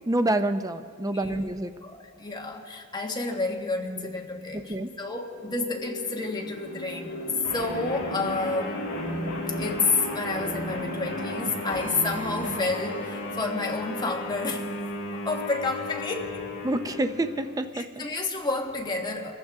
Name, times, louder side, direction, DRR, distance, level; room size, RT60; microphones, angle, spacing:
voice 1, 0.1-1.7 4.5-4.9 16.6-18.1, right 1 dB, 15° right, 9 dB, 0.5 m, -27 dB
voice 2, 1.0-1.4 1.8-7.1 7.5-8.9 9.6-14.8 15.1-16.5 17.7-19.4, left 3 dB, 20° left, 1 dB, 1.4 m, -30 dB
sound 1, 4.3-4.4 4.8-16.9, left 1 dB, 75° left, 3.0 m, -39 dB
sound 2, 7.4-17.7, left 1 dB, 55° left, 5.4 m, -35 dB
sound 3, 11.7-14.3 15.7-16.3, right 3 dB, 30° right, 2.8 m, -47 dB
26.5 x 14.5 x 3.6 m, 2.1 s
head